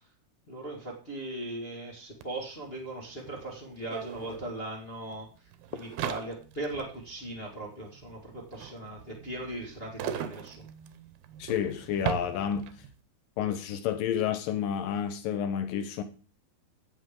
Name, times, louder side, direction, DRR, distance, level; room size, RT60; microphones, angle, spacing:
voice 1, 0.5-5.3 5.7-10.6, right 1 dB, 35° left, 0.9 m, -39 dB
sound 1, 2.2-2.3 2.5-13.0, right 10 dB, 75° right, 2.6 m, -40 dB
voice 2, 11.4-12.7 13.4-16.0, left 9 dB, 75° left, 2.2 m, -30 dB
15.0 x 8.0 x 3.8 m
omnidirectional pair, 4.8 m